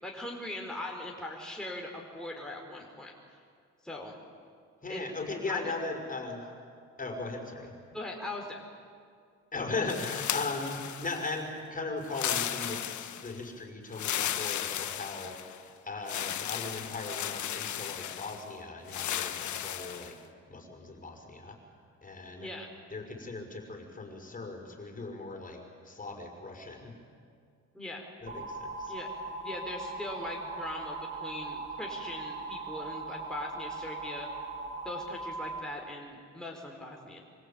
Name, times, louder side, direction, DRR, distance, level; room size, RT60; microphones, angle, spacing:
voice 1, 0.0-3.1 3.8-4.2 4.9-5.0 5.5-5.7 7.9-8.6 22.3-22.7 27.7-28.1 28.9-34.3 34.8-37.2, left 1 dB, ahead, -1 dB, 4.4 m, -40 dB
voice 2, 4.8-6.5 7.0-7.7 9.5-20.2 20.5-21.6 22.0-22.5 22.9-26.9 28.2-28.9, left 3 dB, 25° left, 3 dB, 5.6 m, -38 dB
sound 1, 9.9-11.4 12.0-13.4 13.9-15.6 16.1-18.4 18.9-20.1, left 11 dB, 70° left, 1.5 m, -35 dB
sound 2, 28.3-35.6, right 3 dB, 35° right, 4.2 m, -39 dB
26.0 x 25.5 x 8.9 m, 2.2 s
cardioid pair, 90°, 30 cm